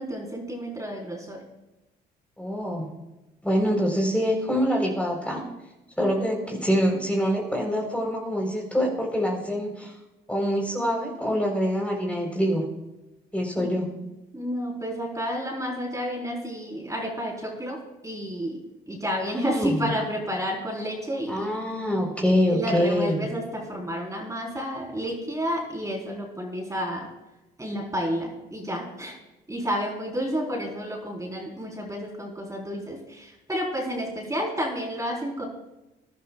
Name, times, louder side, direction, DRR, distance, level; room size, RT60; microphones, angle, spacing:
voice 1, 0.0-1.4 13.6-14.0 14.3-18.6 18.9-21.5 22.5-27.1 27.6-29.2 29.5-35.5, equal, 15° right, -1 dB, 4.1 m, -30 dB
voice 2, 2.4-2.9 3.4-5.5 6.0-9.9 10.3-12.7 13.3-13.9 19.2-19.9 21.3-23.2, equal, 5° left, 0 dB, 3.9 m, -25 dB
21.5 x 11.0 x 2.4 m, 1.0 s
supercardioid pair, 65°, 21 cm